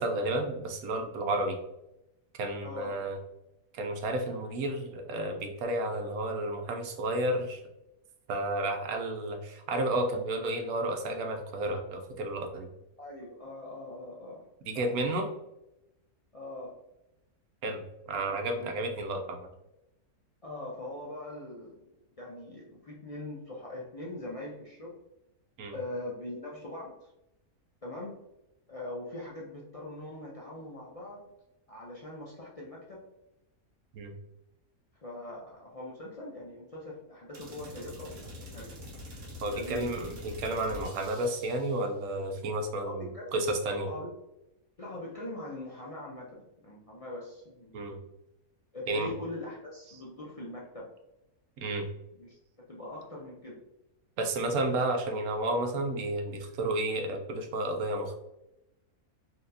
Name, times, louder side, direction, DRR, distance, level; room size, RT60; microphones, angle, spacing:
voice 1, 0.0-1.6 2.4-3.2 3.7-7.6 8.3-12.7 14.7-15.3 17.6-19.5 25.6-25.7 33.9-34.1 39.4-43.9 47.7-48.0 48.9-49.1 51.6-51.8 54.2-58.1, right 1 dB, 80° right, 4 dB, 1.1 m, -31 dB
voice 2, 2.6-3.0 13.0-14.5 14.7-14.9 16.3-16.7 18.3-18.7 20.4-21.8 22.2-25.0 25.7-27.1 27.8-28.2 28.7-31.2 31.7-33.0 35.0-38.8 39.5-40.0 42.8-43.3 43.9-44.1 44.8-47.9 48.7-50.9 52.2-52.4 52.7-53.6, left 1 dB, 55° left, -4 dB, 0.3 m, -42 dB
sound 1, 37.3-41.8, left 1 dB, 60° right, 1.3 m, -45 dB
4.2 x 2.8 x 2.6 m, 0.90 s
omnidirectional pair, 1.5 m